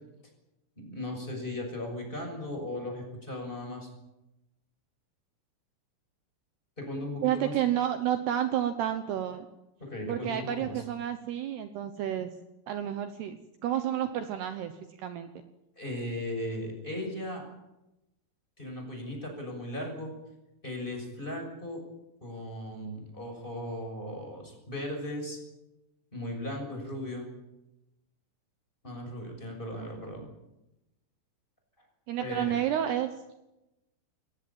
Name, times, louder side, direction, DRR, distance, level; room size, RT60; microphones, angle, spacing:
voice 1, 0.8-3.9 6.8-7.5 9.8-10.8 15.8-17.5 18.6-20.1 20.6-21.8 22.2-25.4 26.1-27.3 28.8-30.3 32.2-32.7, left 1 dB, 10° left, 2 dB, 6.3 m, -37 dB
voice 2, 7.2-9.5 10.1-12.3 12.7-14.7 15.0-15.3 32.1-33.1, right 11 dB, 75° right, 9 dB, 2.5 m, -30 dB
22.0 x 19.0 x 8.8 m, 0.95 s
omnidirectional pair, 5.9 m